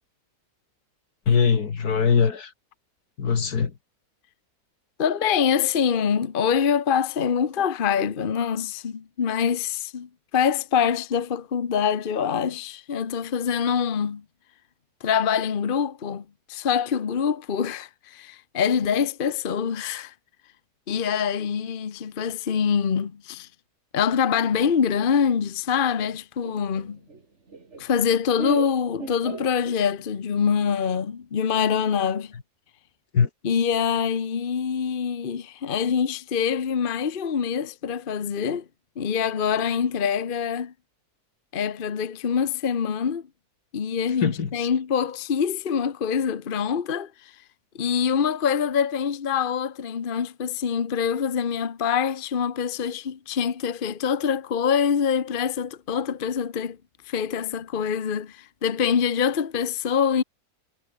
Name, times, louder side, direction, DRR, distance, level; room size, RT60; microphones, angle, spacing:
voice 1, 1.3-2.5 3.2-3.7 33.1-33.3 44.2-44.7, left 6 dB, 75° left, 2.4 m, -21 dB
voice 2, 5.0-14.2 15.0-20.1 20.9-23.5 23.9-27.0 27.8-32.3 33.4-38.7 39.0-40.7 41.5-43.2 43.7-47.3 47.7-56.8 57.1-60.2, left 7 dB, 40° left, 1.1 m, -25 dB
Laughter, 26.4-30.1, right 4 dB, 45° right, 2.8 m, -37 dB
omnidirectional pair, 1.7 m